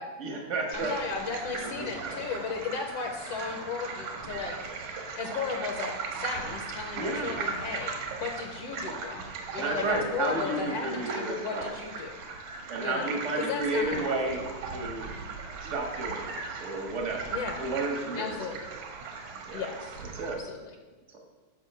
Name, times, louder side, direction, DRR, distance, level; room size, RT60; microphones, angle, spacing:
voice 1, 0.2-0.9 1.6-2.2 7.0-7.3 9.6-11.7 12.7-14.4 14.7-15.1 15.6-18.4 19.5-19.6 20.1-20.4 21.1-21.2, right 2 dB, 70° right, 1 dB, 0.6 m, -32 dB
voice 2, 0.7-4.6 5.2-12.2 12.8-14.2 17.3-17.6 18.2-18.6 19.5-20.0 20.3-20.7, left 5 dB, 70° left, 3 dB, 1.7 m, -35 dB
sound 1, 0.7-20.3, right 4 dB, 90° right, 2.7 m, -38 dB
9.1 x 5.3 x 6.7 m, 1.3 s
omnidirectional pair, 3.3 m